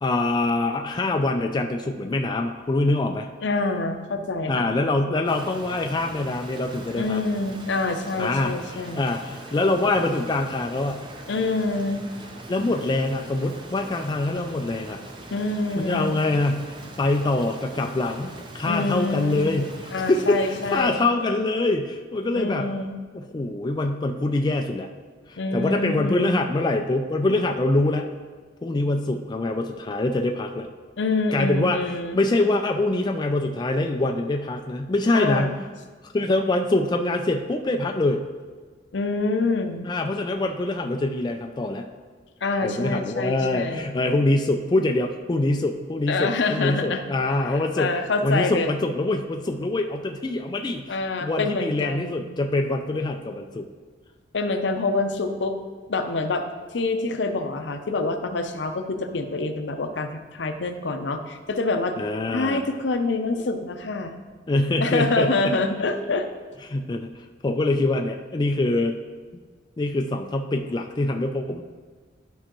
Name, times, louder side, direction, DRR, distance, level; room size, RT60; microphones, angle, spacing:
voice 1, 0.0-3.3 4.5-7.2 8.2-11.0 12.5-15.0 15.8-22.7 23.1-24.9 25.3-28.1 28.6-30.7 31.3-31.8 32.1-35.6 36.0-38.2 39.8-41.9 42.6-47.9 48.2-53.7 62.0-62.6 64.5-65.5 66.7-69.0 69.8-71.6, left 2 dB, 25° left, 4 dB, 0.4 m, -24 dB
voice 2, 3.4-4.7 6.9-9.1 11.3-12.0 15.3-16.1 18.7-19.4 19.9-21.1 22.3-23.0 25.4-26.3 31.0-32.2 35.1-35.5 38.9-39.9 42.4-43.9 46.1-47.1 47.4-48.7 50.9-52.2 54.3-55.5 55.9-61.9 62.3-64.2 64.8-66.3, left 3 dB, 65° left, 7 dB, 0.6 m, -26 dB
Rain, 5.2-21.1, right 2 dB, 25° right, 0.7 m, -42 dB
11.0 x 5.5 x 3.0 m, 1.4 s
head